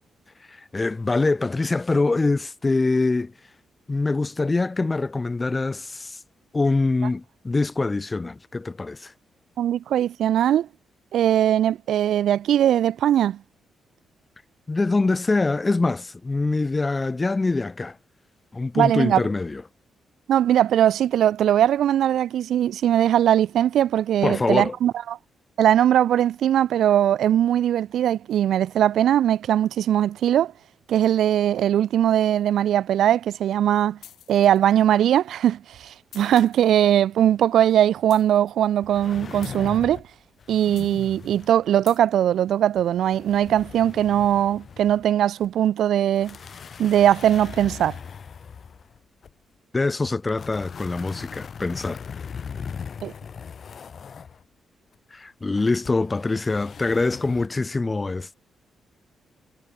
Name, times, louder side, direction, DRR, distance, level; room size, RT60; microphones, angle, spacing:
voice 1, 0.5-3.3 3.9-6.2 6.5-9.1 14.7-18.0 18.5-19.6 24.2-24.7 49.7-52.0 55.1-58.3, left 3 dB, 20° left, 1.4 m, -24 dB
voice 2, 9.6-10.7 11.1-13.4 18.7-19.2 20.3-25.2 25.6-30.5 30.9-34.0 34.3-40.0 40.5-46.4 46.8-48.0 53.0-53.1, right 11 dB, 80° right, 0.3 m, -20 dB
sound 1, 34.0-35.0 36.1-36.9 38.1-38.7 39.4-40.1 40.8-41.2 41.9-42.0, left 11 dB, 85° left, 4.5 m, -48 dB
sound 2, 38.8-40.1 40.4-41.7 42.8-45.1 45.4-45.5 46.2-49.3 50.1-54.4 55.9-57.5, left 6 dB, 45° left, 1.9 m, -39 dB
cardioid pair, 130°, 0 cm